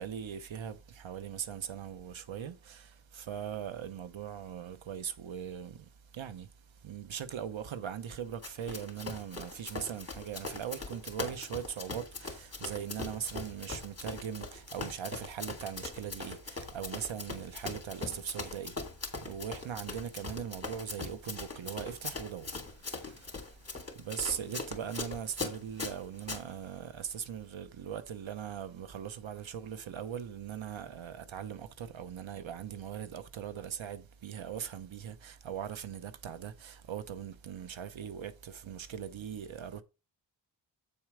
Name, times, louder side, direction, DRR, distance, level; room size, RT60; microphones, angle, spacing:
voice 1, 0.0-18.9 19.1-39.8, right 8 dB, 85° right, 1.0 m, -40 dB
Run, 8.4-26.4, left 3 dB, 30° left, 2.4 m, -41 dB
8.7 x 4.4 x 4.9 m
cardioid pair, 70°, 46 cm